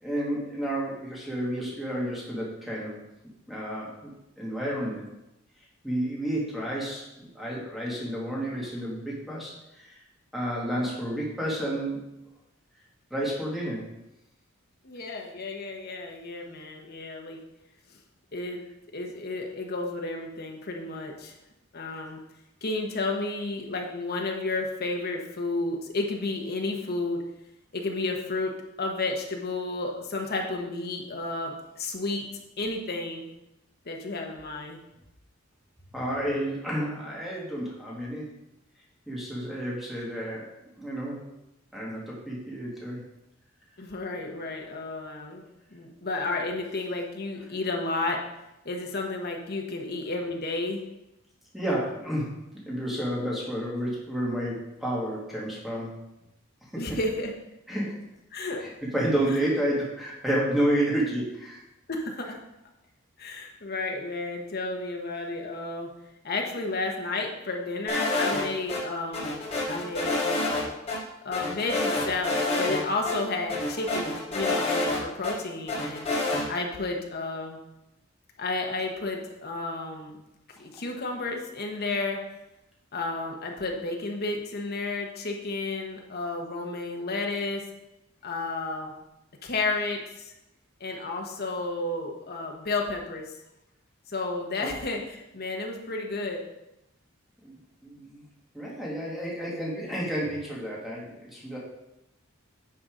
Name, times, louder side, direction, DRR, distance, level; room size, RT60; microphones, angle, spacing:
voice 1, 0.0-3.0 3.5-4.1 4.4-5.1 5.8-9.9 10.3-12.0 13.1-13.9 35.9-38.3 39.1-40.5 40.8-41.2 41.7-43.0 51.5-56.0 56.9-57.0 57.7-58.0 58.6-61.6 94.6-94.7 97.4-97.6 97.8-98.2 98.5-101.6, right 1 dB, ahead, -6 dB, 2.2 m, -30 dB
voice 2, 14.8-17.4 18.3-18.6 18.9-21.4 21.7-22.2 22.6-27.2 27.7-28.5 28.8-32.3 32.6-33.3 33.8-34.8 43.8-45.4 45.7-48.2 48.6-50.8 56.8-57.3 58.3-58.6 59.3-59.4 61.9-62.4 63.2-65.9 66.2-69.4 69.7-70.7 71.2-76.1 76.5-77.6 78.4-80.2 80.6-82.2 82.9-87.6 88.2-88.9 89.4-90.3 90.8-93.4 94.1-96.4, left 2 dB, 50° left, 2 dB, 1.2 m, -32 dB
sound 1, 67.9-68.8 69.1-70.6 70.9-71.0 71.3-72.8 73.1-73.2 73.5-75.3 75.7-76.4, left 2 dB, 30° left, 2.6 m, -27 dB
9.4 x 4.1 x 5.0 m, 0.90 s
head